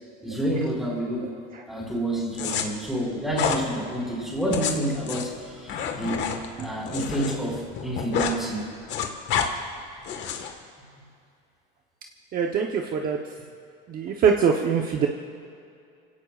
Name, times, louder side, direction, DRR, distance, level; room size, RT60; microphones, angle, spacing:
voice 1, 0.2-1.3 1.7-6.3 6.6-8.7, right 1 dB, ahead, -4 dB, 5.0 m, -29 dB
sound 1, 2.3-2.6 3.3-3.6 4.4-7.3 7.6-8.4 8.7-9.5 10.0-10.5, left 7 dB, 55° left, 1.6 m, -28 dB
voice 2, 12.3-13.2 13.9-15.1, right 6 dB, 45° right, 2 dB, 1.0 m, -23 dB
29.5 x 17.0 x 2.5 m, 2.5 s
cardioid pair, 140°, 21 cm